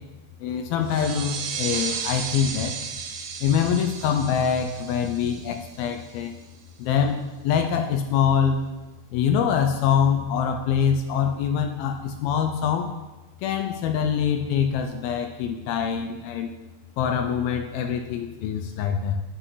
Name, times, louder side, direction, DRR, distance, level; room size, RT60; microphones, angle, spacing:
voice 1, 0.4-2.8 3.4-6.3 6.8-8.6 9.1-12.9 13.4-16.5 17.0-19.2, left 7 dB, 75° left, 6 dB, 2.4 m, -24 dB
sound 1, 0.8-6.2, right 6 dB, 85° right, 3.1 m, -34 dB
10.5 x 9.9 x 4.0 m, 1.1 s
omnidirectional pair, 4.8 m